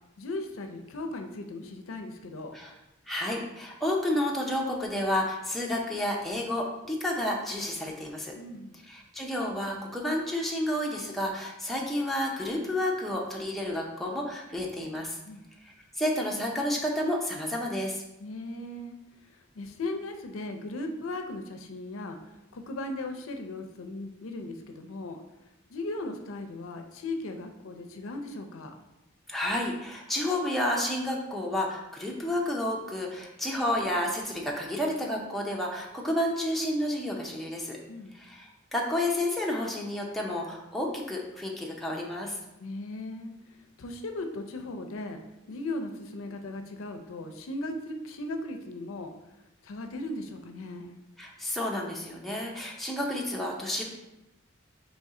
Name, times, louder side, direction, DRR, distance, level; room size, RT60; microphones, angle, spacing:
voice 1, 0.2-2.5 8.4-8.8 15.3-15.4 18.2-19.0 19.6-22.2 22.5-25.2 25.7-28.7 37.9-38.2 42.6-45.2 45.5-49.1 49.6-51.0, left 2 dB, 80° left, 5 dB, 0.5 m, -37 dB
voice 2, 3.1-8.3 8.9-15.2 15.6-18.0 29.3-37.8 38.1-42.4 51.2-53.9, left 1 dB, ahead, -2 dB, 0.5 m, -30 dB
4.2 x 3.1 x 3.6 m, 0.94 s
head